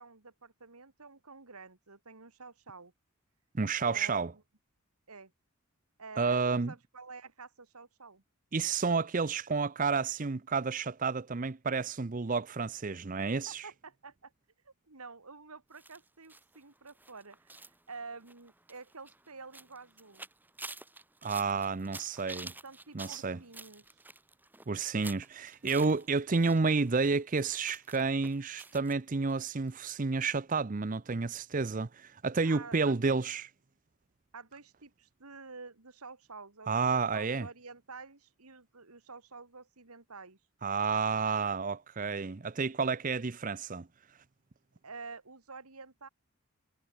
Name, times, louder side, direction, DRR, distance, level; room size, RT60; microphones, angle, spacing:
voice 1, 0.0-2.9 3.8-4.3 5.1-5.3 6.0-6.4 6.7-8.2 13.5-14.3 14.6-20.3 22.6-24.0 32.4-33.2 34.3-40.4 44.8-46.1, right 4 dB, 90° right, 2.5 m, -49 dB
voice 2, 3.5-4.3 6.2-6.7 8.5-13.7 21.2-22.5 22.9-23.4 24.7-33.4 36.7-37.5 40.6-43.9, right 4 dB, 35° right, 0.6 m, -30 dB
sound 1, 15.7-26.6 26.9-28.9 29.3-29.4 29.7-29.8, right 2 dB, 10° right, 3.1 m, -49 dB
head